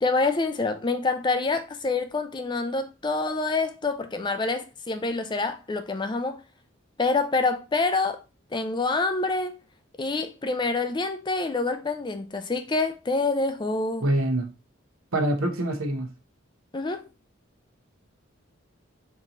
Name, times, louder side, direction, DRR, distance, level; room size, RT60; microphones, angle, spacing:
voice 1, 0.0-6.4 7.0-8.2 8.5-9.5 10.0-14.1 16.7-17.1, left 3 dB, 20° left, 0.4 m, -26 dB
voice 2, 14.0-14.5 15.1-16.1, right 1 dB, 80° right, 1.1 m, -25 dB
4.5 x 3.0 x 3.8 m
head